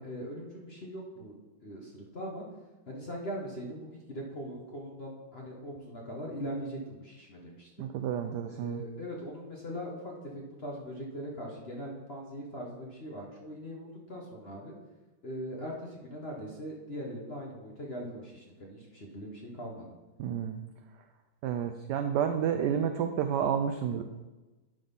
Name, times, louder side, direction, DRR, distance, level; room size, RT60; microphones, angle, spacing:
voice 1, 0.0-2.4 2.9-7.7 8.5-14.7 15.2-19.9, equal, 40° left, -1 dB, 1.0 m, -41 dB
voice 2, 7.8-8.8 20.2-20.6 21.4-24.0, right 8 dB, 80° right, 7 dB, 0.9 m, -30 dB
10.5 x 4.0 x 5.4 m, 1.1 s
omnidirectional pair, 2.3 m